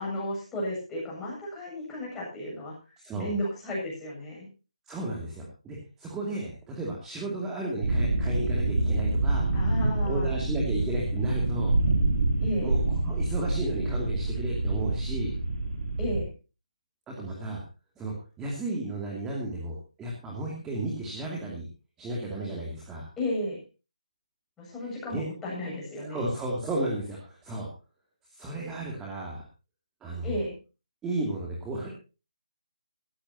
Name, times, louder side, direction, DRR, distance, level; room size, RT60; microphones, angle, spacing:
voice 1, 0.0-2.7 3.2-4.5 9.5-10.4 12.4-12.7 16.0-16.3 23.2-23.6 24.6-26.2 30.2-30.5, left 1 dB, 10° left, -4 dB, 7.8 m, -33 dB
voice 2, 3.0-3.3 4.9-9.5 10.0-11.8 12.6-15.4 17.1-17.6 18.0-21.6 22.0-23.1 25.1-25.3 26.0-27.7 28.3-29.4 30.0-30.4 31.0-31.9, right 2 dB, 10° right, -2 dB, 2.6 m, -34 dB
sound 1, 7.8-16.2, right 2 dB, 65° right, 3.6 m, -27 dB
18.5 x 14.5 x 2.9 m, 0.31 s
figure-of-eight pair, 155°, 4 cm